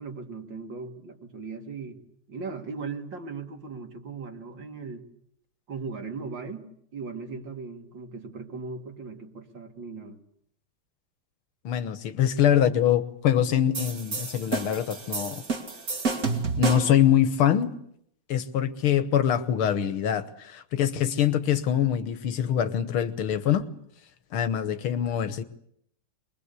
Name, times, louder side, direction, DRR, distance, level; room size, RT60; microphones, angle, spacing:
voice 1, 0.0-2.0 2.3-5.0 5.7-10.2, right 4 dB, 60° right, 2.9 m, -38 dB
voice 2, 11.6-15.4 16.6-17.7 18.3-23.7 24.3-25.4, left 10 dB, 75° left, 2.0 m, -24 dB
sound 1, 13.7-17.0, right 4 dB, 40° right, 2.5 m, -30 dB
24.0 x 22.0 x 8.3 m
omnidirectional pair, 2.4 m